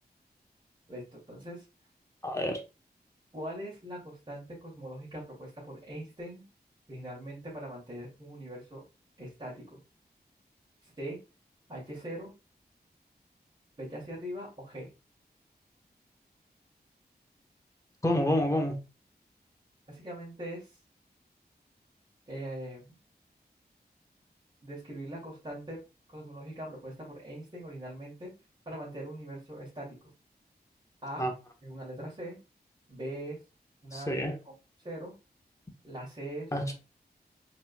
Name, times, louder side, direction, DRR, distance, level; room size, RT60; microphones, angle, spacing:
voice 1, 0.9-1.6 3.3-6.5 6.9-8.8 9.2-9.8 10.8-11.2 11.7-12.3 13.8-14.9 19.9-20.8 22.3-23.0 24.6-25.8 26.1-28.3 28.7-30.1 31.0-31.3 31.6-32.4 32.9-33.4 33.8-35.1 35.8-36.7, right 1 dB, 30° right, 2.3 m, -41 dB
voice 2, 2.2-2.6 18.0-18.8 31.2-31.3 33.9-34.3 36.5-36.7, left 1 dB, 20° left, 1.0 m, -28 dB
4.2 x 4.1 x 2.3 m
wide cardioid pair, 75°, 17 cm